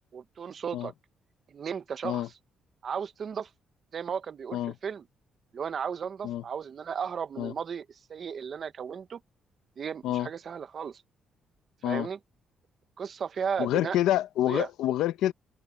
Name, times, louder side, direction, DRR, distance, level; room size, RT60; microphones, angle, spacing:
voice 1, 0.1-0.9 1.5-2.3 2.8-3.5 3.9-5.0 5.5-9.2 9.8-11.0 11.8-12.2 13.0-14.0 14.5-14.7, right 7 dB, 50° right, 1.2 m, -35 dB
voice 2, 13.6-15.3, left 13 dB, 90° left, 1.1 m, -27 dB
cardioid pair, 90°, 0 cm